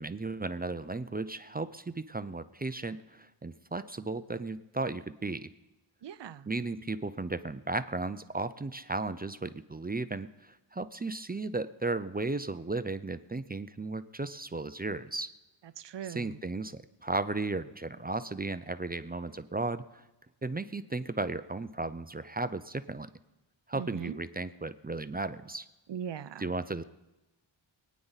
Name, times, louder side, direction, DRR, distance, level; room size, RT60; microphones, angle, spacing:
voice 1, 0.0-5.5 6.5-15.3 16.1-20.0 20.4-23.1 23.7-25.7 26.4-26.8, right 3 dB, 20° right, 12 dB, 0.4 m, -35 dB
voice 2, 6.0-6.5 15.6-16.4 23.7-24.2 25.9-26.5, right 8 dB, 60° right, 15 dB, 0.6 m, -40 dB
25.0 x 9.4 x 4.0 m, 1.0 s
wide cardioid pair, 95°, 48 cm